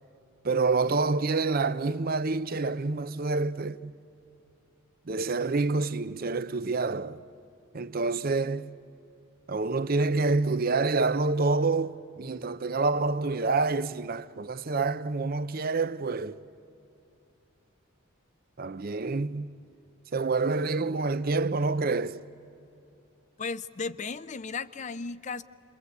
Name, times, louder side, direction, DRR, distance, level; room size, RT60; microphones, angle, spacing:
voice 1, 0.4-3.9 5.1-7.2 7.7-8.7 9.5-16.4 18.6-19.5 20.1-22.2, right 3 dB, 45° right, 0.6 m, -27 dB
voice 2, 23.4-25.4, left 4 dB, 35° left, 0.5 m, -35 dB
27.5 x 23.0 x 8.3 m
head